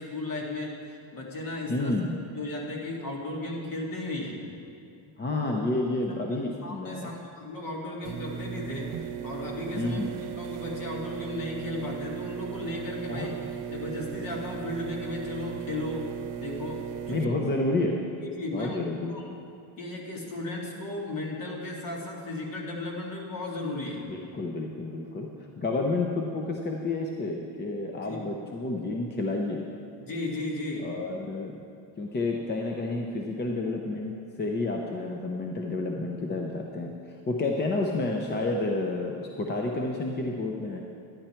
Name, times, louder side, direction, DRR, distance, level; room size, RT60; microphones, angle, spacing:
voice 1, 0.0-1.9 2.3-4.4 6.1-13.3 13.7-17.3 18.2-19.4 19.8-24.1 28.0-28.3 30.0-30.9, left 2 dB, 45° left, -2 dB, 2.3 m, -35 dB
voice 2, 1.7-2.2 5.2-7.1 9.8-10.1 13.1-13.3 17.1-18.1 18.5-19.1 24.1-25.3 25.6-29.7 30.8-31.6 32.0-34.1 34.4-36.9 37.3-40.8, left 2 dB, 20° left, 1 dB, 0.7 m, -30 dB
sound 1, 8.0-17.2, right 9 dB, 85° right, 0.8 m, -37 dB
11.5 x 10.5 x 4.4 m, 2.6 s
cardioid pair, 135°, 47 cm